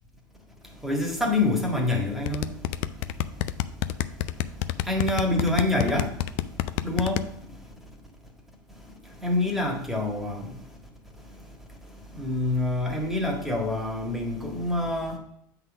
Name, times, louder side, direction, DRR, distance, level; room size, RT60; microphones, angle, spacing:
voice 1, 0.8-2.5 4.9-6.1 6.8-7.2 9.2-10.4 12.1-15.2, left 2 dB, ahead, 1.7 m, -26 dB
sound 1, 2.3-7.2, left 15 dB, 60° left, 0.4 m, -27 dB
7.9 x 3.9 x 5.1 m
hypercardioid pair, 85°, 11 cm